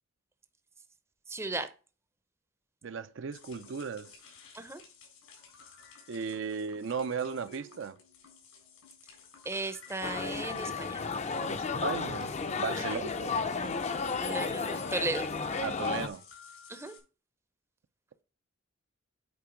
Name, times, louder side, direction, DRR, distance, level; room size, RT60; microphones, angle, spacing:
voice 1, 1.3-1.7 4.5-4.8 9.4-11.0 12.8-13.0 14.2-15.3 16.7-16.9, right 2 dB, 10° right, 0.6 m, -36 dB
voice 2, 2.8-4.1 6.1-8.0 11.4-13.4 15.6-16.2, right 5 dB, 60° right, 0.5 m, -36 dB
sound 1, 3.3-17.0, left 3 dB, 85° left, 3.7 m, -54 dB
sound 2, 10.0-16.1, left 4 dB, 30° left, 0.5 m, -33 dB
8.7 x 4.4 x 5.0 m
head